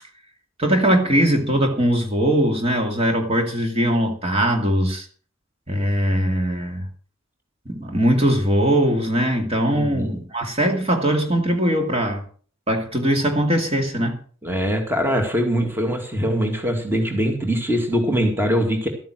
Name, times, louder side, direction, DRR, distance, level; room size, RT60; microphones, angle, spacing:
voice 1, 0.6-5.1 5.7-6.9 7.7-12.2 12.7-14.2, right 1 dB, 30° right, 4 dB, 2.3 m, -20 dB
voice 2, 9.7-10.2 14.4-18.9, equal, 10° right, 4 dB, 2.2 m, -22 dB
13.0 x 9.2 x 6.3 m, 0.43 s
head